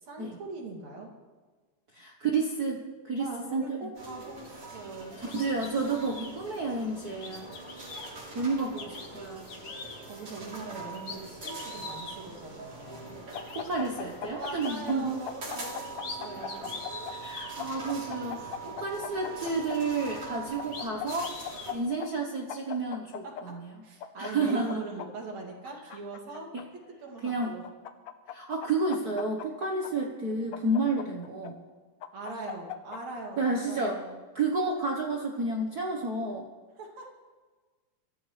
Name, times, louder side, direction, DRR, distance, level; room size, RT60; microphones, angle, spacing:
voice 1, 0.0-1.2 3.2-5.2 10.1-13.2 14.4-16.7 23.2-23.3 23.8-26.5 27.0-27.7 32.1-34.2 36.8-37.1, right 3 dB, 60° right, 0 dB, 3.7 m, -41 dB
voice 2, 1.9-3.8 5.2-7.5 8.3-9.5 13.5-15.1 17.1-21.3 21.7-23.7 24.2-24.8 26.5-26.6 27.2-27.6 28.3-31.6 33.4-34.0 34.3-36.5, right 3 dB, 90° right, 1 dB, 0.8 m, -31 dB
sound 1, 4.0-21.7, right 3 dB, 45° right, 4.2 m, -43 dB
sound 2, 5.3-6.3 7.2-8.1 8.8-9.1 9.5-10.0 10.6-10.7 10.9-12.2 13.0-13.1 13.3-13.7 14.4-14.8 15.6-16.2 16.5-17.5 20.2-20.3 20.7-21.7, left 4 dB, 50° left, 2.3 m, -43 dB
sound 3, 13.3-15.0 15.3-17.1 17.6-19.8 20.6-21.7 22.0-22.1 22.5-23.4 24.0-25.1 25.6-26.6 27.4-28.3 28.6-29.9 30.5-31.5 32.0-33.0, left 9 dB, 75° left, 1.3 m, -39 dB
24.5 x 14.5 x 3.3 m, 1.4 s
omnidirectional pair, 3.6 m